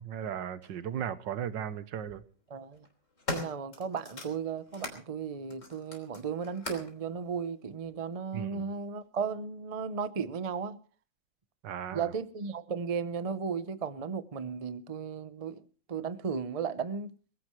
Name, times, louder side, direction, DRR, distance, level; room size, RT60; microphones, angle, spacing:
voice 1, 0.0-2.2 8.3-8.7 11.6-12.1, right 9 dB, 80° right, 1.6 m, -36 dB
sound 1, 0.6-0.7 1.8-2.2 2.7-5.0 5.5-7.0 7.8-7.9, left 2 dB, 45° left, 3.6 m, -40 dB
voice 2, 2.5-2.9 3.3-10.8 11.9-15.6 15.9-17.2, right 6 dB, 35° right, 0.5 m, -35 dB
22.5 x 15.5 x 3.2 m
omnidirectional pair, 1.9 m